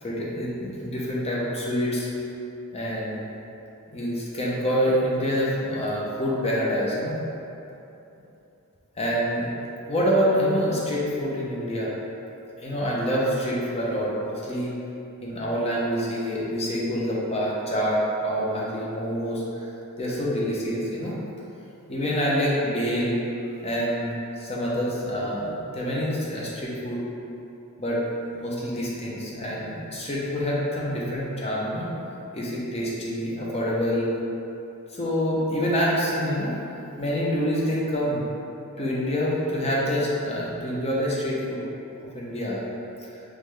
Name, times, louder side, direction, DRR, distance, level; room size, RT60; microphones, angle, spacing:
voice 1, 0.0-2.1 2.7-3.3 3.9-7.1 9.0-9.5 9.9-11.9 12.6-14.7 15.2-19.7 20.0-21.1 21.9-23.2 23.6-27.0 27.8-28.0 28.3-31.9 32.3-34.1 34.9-36.6 37.0-38.2 38.8-41.6 42.1-42.6, equal, 30° left, -5 dB, 0.7 m, -26 dB
3.9 x 3.1 x 3.3 m, 2.8 s
head